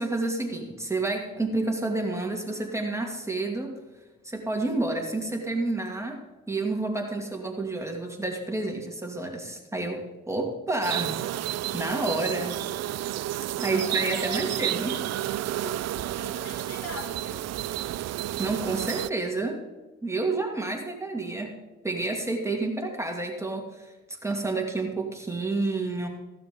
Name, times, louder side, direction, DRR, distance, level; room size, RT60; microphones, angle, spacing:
voice 1, 0.0-3.8 4.2-6.2 6.5-11.2 11.7-12.6 13.6-15.0 15.6-15.7 18.4-19.6 20.0-21.5 21.8-26.1, right 2 dB, 10° right, 1 dB, 2.3 m, -29 dB
sound 1, 10.8-19.1, right 13 dB, 60° right, 0.4 m, -31 dB
voice 2, 13.6-15.1 16.1-17.5, left 2 dB, 60° left, 2 dB, 3.9 m, -41 dB
16.5 x 12.0 x 3.7 m, 1.2 s
cardioid pair, 90°, 30 cm